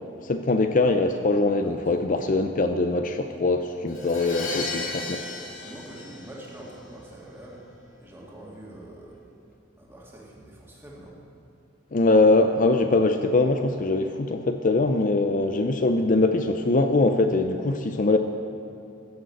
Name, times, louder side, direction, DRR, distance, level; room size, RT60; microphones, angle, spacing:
voice 1, 0.2-5.4 11.9-18.2, left 2 dB, 40° left, 7 dB, 0.5 m, -22 dB
Crash cymbal, 3.9-6.8, left 3 dB, 90° left, 2.9 m, -34 dB
voice 2, 5.6-7.7 8.0-9.2 9.8-11.2, right 1 dB, 10° right, -4 dB, 2.3 m, -44 dB
15.5 x 6.7 x 7.8 m, 2.8 s
head